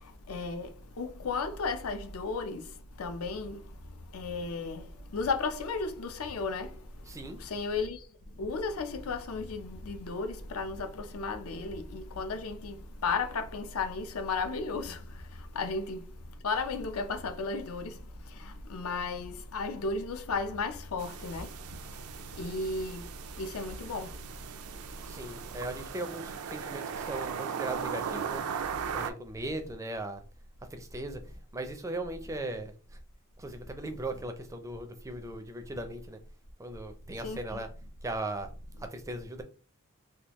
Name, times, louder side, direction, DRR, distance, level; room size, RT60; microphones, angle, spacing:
voice 1, 0.0-25.6 37.2-37.6, left 4 dB, 80° left, 0.6 m, -35 dB
voice 2, 7.1-7.4 25.1-28.4 28.9-30.2 30.7-31.2 31.5-32.7 33.4-36.2 36.6-37.7 38.0-38.5 38.8-39.4, right 2 dB, 15° right, 0.4 m, -38 dB
sound 1, 21.0-29.1, right 7 dB, 80° right, 0.4 m, -38 dB
3.5 x 2.3 x 2.9 m
head